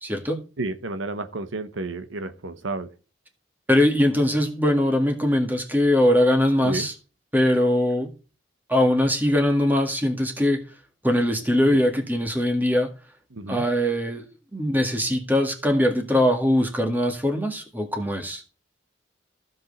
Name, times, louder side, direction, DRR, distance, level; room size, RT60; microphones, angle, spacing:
voice 1, 0.0-0.5 3.7-6.9 7.3-8.1 8.7-10.7 11.0-12.9 13.5-18.4, left 1 dB, 10° right, 1.8 m, -21 dB
voice 2, 0.6-2.9 6.6-6.9 7.9-8.0 11.7-11.8 13.3-13.6, right 2 dB, 85° right, 1.0 m, -31 dB
15.5 x 5.4 x 4.1 m
head